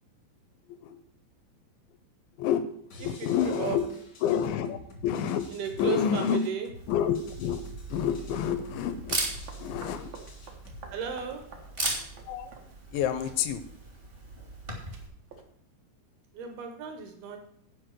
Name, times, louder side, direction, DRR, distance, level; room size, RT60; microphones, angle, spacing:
voice 1, 0.7-1.0 2.4-2.7 3.0-3.9 4.2-5.5 5.8-6.5 6.9-7.6 7.9-9.2 9.6-10.1 12.3-12.5 12.9-13.6, left 8 dB, 80° left, 11 dB, 2.7 m, -28 dB
sound 1, 2.9-10.9, left 1 dB, 60° left, 1.0 m, -49 dB
voice 2, 3.2-3.8 5.5-6.7 10.9-11.5 16.3-17.4, right 7 dB, 70° right, 5 dB, 2.4 m, -34 dB
Camera, 6.7-15.1, right 1 dB, 50° right, 0.6 m, -38 dB
sound 2, 8.8-15.4, right 4 dB, 90° right, 1.5 m, -51 dB
9.6 x 5.3 x 7.5 m, 0.66 s
omnidirectional pair, 5.7 m